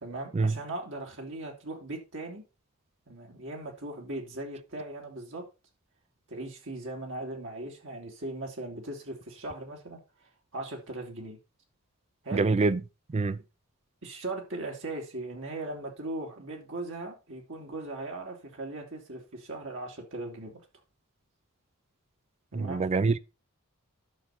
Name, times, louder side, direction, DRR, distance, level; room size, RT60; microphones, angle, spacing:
voice 1, 0.0-2.4 3.1-5.4 6.3-11.4 12.2-12.5 14.0-20.6 22.5-22.8, right 2 dB, 60° right, 2.7 m, -39 dB
voice 2, 12.3-12.8 13.1-13.4 22.5-23.2, right 3 dB, 30° right, 0.4 m, -25 dB
11.5 x 6.4 x 4.3 m
head